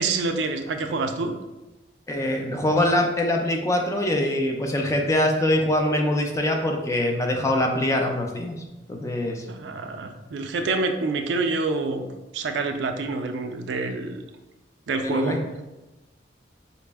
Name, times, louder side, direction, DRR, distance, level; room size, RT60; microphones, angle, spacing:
voice 1, 0.0-1.4 9.5-12.0 12.3-14.2 14.9-15.4, right 3 dB, 75° right, 6 dB, 0.3 m, -27 dB
voice 2, 2.1-8.6 8.9-9.5 15.0-15.4, left 1 dB, 15° left, 2 dB, 0.4 m, -23 dB
4.0 x 2.0 x 3.3 m, 1.0 s
head